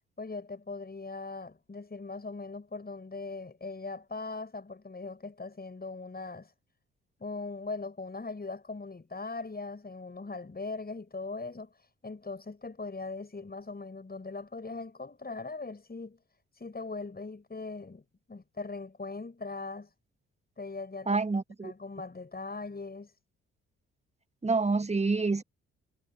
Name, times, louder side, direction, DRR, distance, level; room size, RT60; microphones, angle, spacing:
voice 1, 0.2-6.5 7.2-16.2 16.5-19.9 20.6-21.2 21.6-23.1, left 3 dB, 25° left, 7.8 m, -40 dB
voice 2, 21.1-21.7 24.4-25.4, right 3 dB, 20° right, 1.7 m, -27 dB
figure-of-eight pair, 40°, 36 cm